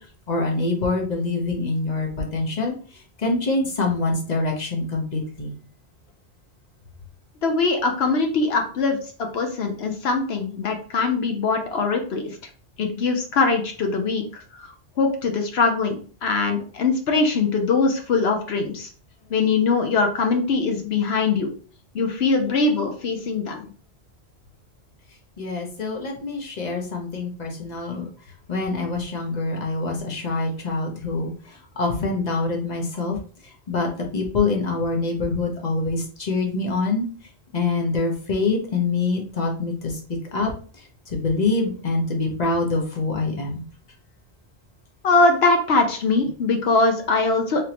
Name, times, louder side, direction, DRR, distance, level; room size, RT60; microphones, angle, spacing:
voice 1, 0.3-2.7 3.2-5.5 25.4-28.1 28.5-33.2 33.7-37.1 37.5-40.0 40.3-40.5 41.1-43.6, left 3 dB, 40° left, 1 dB, 1.0 m, -25 dB
voice 2, 7.4-12.2 12.8-14.7 15.0-18.9 19.3-21.5 21.9-23.7 45.0-47.6, left 3 dB, 70° left, 4 dB, 0.9 m, -22 dB
3.6 x 3.4 x 2.9 m, 0.41 s
omnidirectional pair, 1.1 m